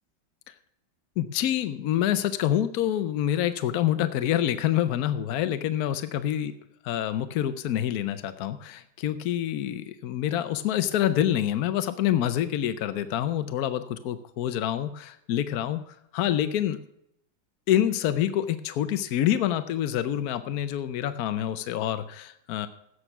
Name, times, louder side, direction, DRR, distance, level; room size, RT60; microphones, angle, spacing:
voice 1, 1.2-6.5 6.9-16.8 17.7-22.7, left 11 dB, 70° left, 11 dB, 0.8 m, -27 dB
16.0 x 6.6 x 5.9 m, 0.77 s
omnidirectional pair, 2.2 m